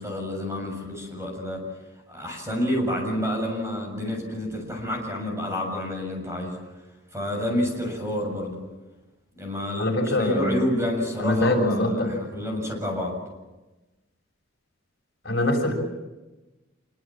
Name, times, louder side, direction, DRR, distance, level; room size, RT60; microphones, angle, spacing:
voice 1, 0.0-1.6 2.1-6.6 7.1-8.6 9.3-13.2, left 1 dB, 15° right, 2 dB, 7.2 m, -29 dB
voice 2, 9.8-10.6 11.2-12.1 15.2-15.7, left 1 dB, 55° left, 2 dB, 6.6 m, -23 dB
27.0 x 24.0 x 7.5 m, 1.1 s
head